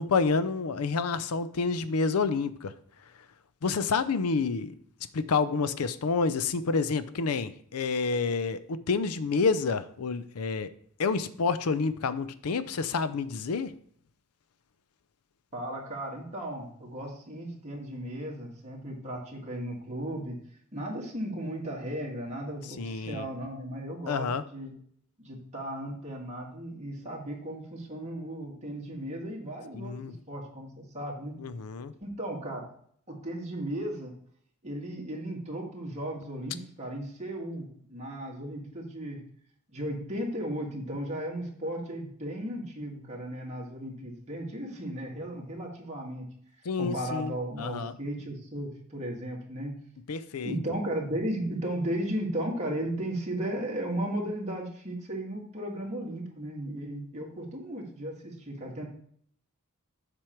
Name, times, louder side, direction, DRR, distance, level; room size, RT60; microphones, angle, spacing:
voice 1, 0.0-2.7 3.6-4.8 5.1-10.7 11.0-13.7 22.8-23.3 24.1-24.4 29.7-30.1 31.4-31.9 46.7-47.9 50.1-50.6, left 4 dB, 85° left, 14 dB, 0.5 m, -29 dB
voice 2, 15.5-20.4 20.7-24.7 25.2-31.4 32.0-32.7 33.1-34.1 34.6-39.2 39.7-46.3 46.8-49.8 50.4-58.9, right 1 dB, 30° right, -2 dB, 2.0 m, -35 dB
7.6 x 5.2 x 4.5 m, 0.62 s
head